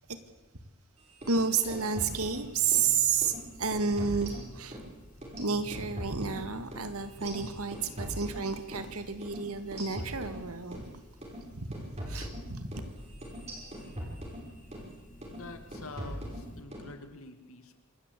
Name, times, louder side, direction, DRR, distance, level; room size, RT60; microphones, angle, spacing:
sound 1, 1.1-2.9 3.2-3.4 3.7-4.9 5.2-8.9 9.2-9.4 9.7-10.9 11.2-11.4 11.7-14.9 15.2-15.5 15.7-16.9, equal, 30° right, 5.6 m, -41 dB
voice 1, 1.3-4.8 5.4-10.9 11.5-11.8 12.1-12.8, right 5 dB, 80° right, 10 dB, 2.0 m, -31 dB
sound 2, 2.3-16.6, left 1 dB, 35° left, 1.8 m, -52 dB
voice 2, 15.3-17.7, left 3 dB, 70° left, 8 dB, 2.5 m, -46 dB
26.5 x 13.5 x 8.4 m, 1.1 s
head